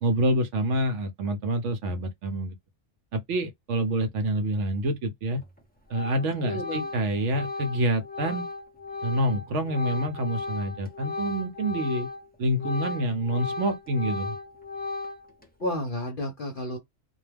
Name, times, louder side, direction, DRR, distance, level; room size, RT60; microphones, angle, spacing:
voice 1, 0.0-2.5 3.1-5.4 5.9-8.5 9.0-12.1 12.4-14.3, right 1 dB, 70° right, 0.9 m, -27 dB
Organ, 5.3-5.6 5.9-12.2 12.5-15.4, left 3 dB, 10° left, 0.5 m, -35 dB
voice 2, 6.4-6.9 15.6-16.8, left 1 dB, 55° left, 0.7 m, -31 dB
2.3 x 2.2 x 3.2 m
omnidirectional pair, 1.3 m